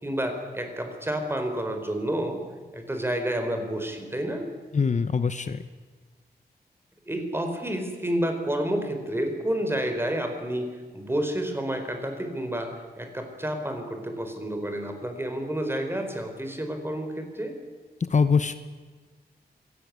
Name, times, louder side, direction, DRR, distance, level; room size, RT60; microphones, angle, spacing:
voice 1, 0.0-2.4 2.7-4.5 7.1-17.6, right 1 dB, 15° right, 5 dB, 4.2 m, -30 dB
voice 2, 4.7-5.6 18.1-18.6, left 5 dB, 45° left, 11 dB, 0.9 m, -23 dB
25.0 x 18.5 x 9.5 m, 1.4 s
wide cardioid pair, 125°, 17 cm